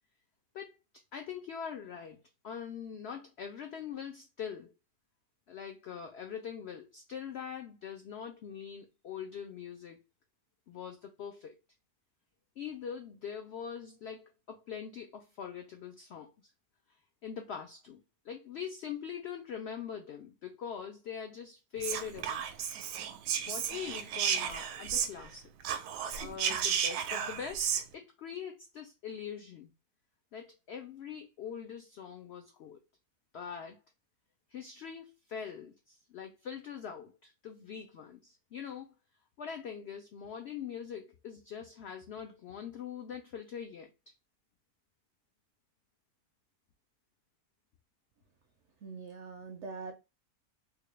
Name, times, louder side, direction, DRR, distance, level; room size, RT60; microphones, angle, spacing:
voice 1, 1.1-4.7 5.5-10.0 10.7-11.6 12.6-16.3 17.2-22.5 23.5-25.9 26.2-29.7 30.3-32.8 33.3-33.8 34.5-38.9 39.4-43.9, left 7 dB, 80° left, 0.5 m, -43 dB
Whispering, 21.8-25.3 25.6-27.8, right 8 dB, 90° right, 1.1 m, -33 dB
voice 2, 48.8-49.9, right 4 dB, 65° right, 0.7 m, -43 dB
3.6 x 2.3 x 3.2 m
omnidirectional pair, 1.7 m